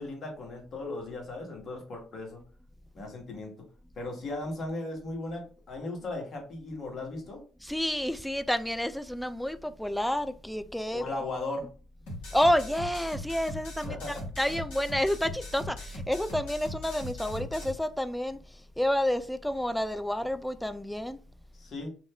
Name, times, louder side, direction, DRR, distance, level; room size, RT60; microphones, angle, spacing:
voice 1, 0.0-2.4 2.9-3.5 4.0-7.4 10.9-11.7 13.8-14.2 21.6-21.9, left 2 dB, 50° left, 1.1 m, -37 dB
voice 2, 7.6-11.1 12.3-14.0 14.4-21.2, left 1 dB, 5° left, 0.3 m, -29 dB
sound 1, 12.1-17.7, left 1 dB, 75° left, 1.0 m, -40 dB
2.4 x 2.1 x 3.4 m
hypercardioid pair, 50°, 0 cm